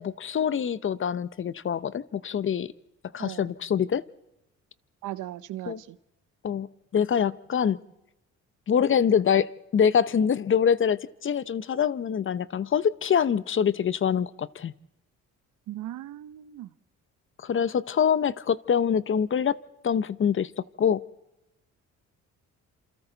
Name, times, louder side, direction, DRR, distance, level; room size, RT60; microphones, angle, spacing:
voice 1, 0.0-2.7 3.1-4.0 5.7-5.8 6.4-6.7 6.9-7.8 8.7-14.7 17.4-19.6 19.8-20.5 20.8-21.0, left 7 dB, 40° left, 17 dB, 0.8 m, -25 dB
voice 2, 3.2-3.5 5.0-6.0 15.7-16.7, right 14 dB, 80° right, 16 dB, 0.8 m, -38 dB
27.5 x 26.0 x 4.0 m, 0.92 s
cardioid pair, 90°, 30 cm